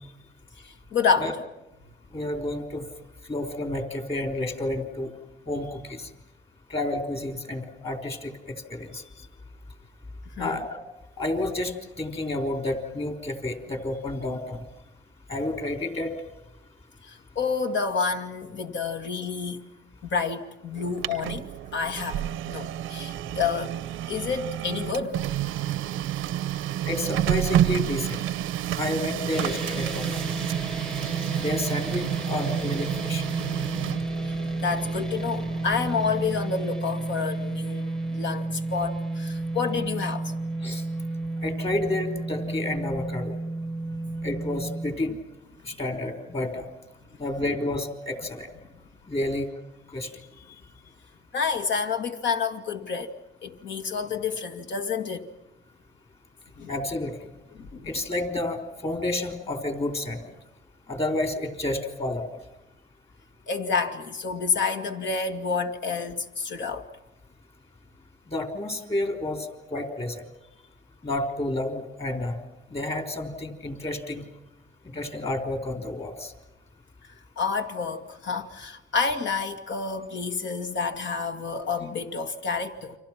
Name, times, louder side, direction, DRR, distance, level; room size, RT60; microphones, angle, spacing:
voice 1, 0.6-1.3 10.4-10.6 17.0-19.6 20.0-23.7 24.1-25.2 34.2-40.3 42.4-42.5 43.9-44.2 51.3-53.2 53.4-55.3 56.6-56.7 57.5-57.9 63.5-66.9 77.4-83.0, left 5 dB, 65° left, 2.2 m, -29 dB
voice 2, 2.1-2.9 3.3-5.1 5.5-6.1 6.7-9.0 10.4-10.7 11.2-14.6 15.3-16.1 26.9-28.2 28.8-30.2 31.4-33.2 40.6-40.8 41.4-43.3 44.2-45.2 45.6-46.7 47.2-48.5 49.1-49.5 49.9-50.1 56.7-57.2 57.8-60.2 60.9-62.4 68.3-70.3 71.0-72.4 72.7-74.3 74.8-76.3, left 1 dB, 30° left, 3.5 m, -30 dB
Printer, 20.7-36.5, right 12 dB, 85° right, 0.8 m, -30 dB
sound 1, 29.3-44.9, right 2 dB, ahead, 0.9 m, -32 dB
30.0 x 25.0 x 5.9 m
cardioid pair, 90°, 20 cm